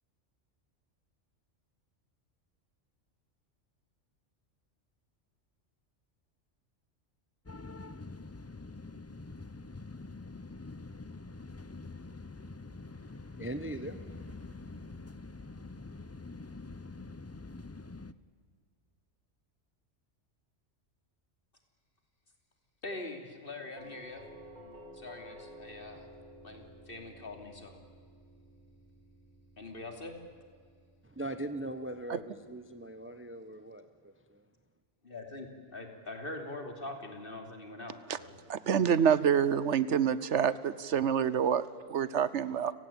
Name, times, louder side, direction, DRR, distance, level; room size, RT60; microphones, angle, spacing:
sound 1, 7.5-18.1, left 3 dB, 20° left, 0.4 m, -45 dB
voice 1, 12.9-14.7 31.0-34.4, right 1 dB, 10° right, 10 dB, 0.9 m, -41 dB
voice 2, 22.8-24.2 24.9-26.1 26.4-27.8 29.6-30.1 35.0-38.4, left 2 dB, 45° left, 4 dB, 3.4 m, -43 dB
Doorbell, 23.8-32.6, equal, 35° right, 5.3 m, -54 dB
voice 3, 38.5-42.7, right 8 dB, 70° right, 17 dB, 1.1 m, -27 dB
29.5 x 17.5 x 8.8 m, 2.1 s
omnidirectional pair, 1.3 m